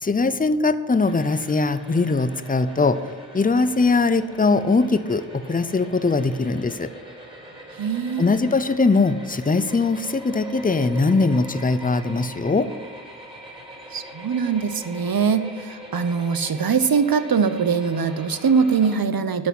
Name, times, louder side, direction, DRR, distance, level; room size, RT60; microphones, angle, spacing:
voice 1, 0.0-3.0 3.3-6.9 8.2-12.7, left 3 dB, 20° left, 13 dB, 0.6 m, -21 dB
sound 1, 1.0-19.0, right 1 dB, 10° right, 3.0 m, -41 dB
voice 2, 7.8-8.3 13.9-19.5, right 6 dB, 50° right, 11 dB, 0.8 m, -22 dB
11.0 x 6.1 x 6.1 m, 1.4 s
cardioid pair, 45°, 45 cm